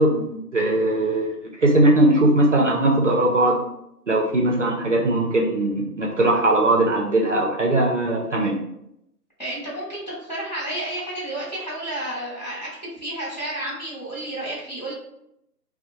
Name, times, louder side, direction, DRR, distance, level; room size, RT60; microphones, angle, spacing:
voice 1, 0.0-3.6 4.1-8.6, right 1 dB, 50° right, -1 dB, 0.5 m, -20 dB
voice 2, 9.4-12.7 13.0-14.9, right 1 dB, 30° left, -8 dB, 0.7 m, -31 dB
2.6 x 2.0 x 2.8 m, 0.81 s
hypercardioid pair, 165°, 47 cm